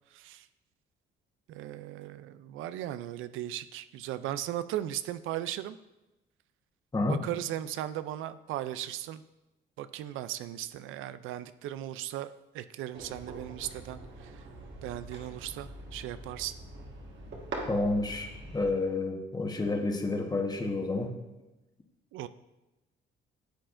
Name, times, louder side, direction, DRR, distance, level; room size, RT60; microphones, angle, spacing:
voice 1, 0.1-0.5 1.5-5.8 7.0-9.2 9.8-12.3 12.5-14.4 14.8-16.5 22.1-22.3, right 12 dB, 90° right, 13 dB, 0.4 m, -37 dB
sound 1, 12.9-18.7, right 2 dB, 65° right, 1.6 m, -43 dB
voice 2, 17.7-21.1, left 2 dB, 20° left, 3 dB, 1.2 m, -30 dB
10.0 x 7.7 x 2.5 m, 1.0 s
cardioid pair, 90°, 20 cm